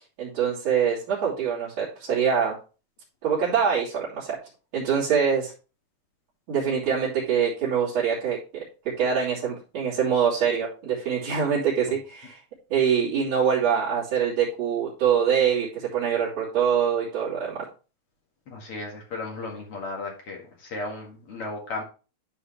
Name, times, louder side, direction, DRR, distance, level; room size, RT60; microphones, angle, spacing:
voice 1, 0.2-2.5 3.2-4.4 4.7-5.5 6.5-8.6 9.0-12.4 12.7-17.6, right 7 dB, 40° right, -11 dB, 3.6 m, -24 dB
voice 2, 18.5-21.8, left 3 dB, 50° left, 0 dB, 1.8 m, -35 dB
11.5 x 4.7 x 3.3 m, 0.34 s
omnidirectional pair, 4.9 m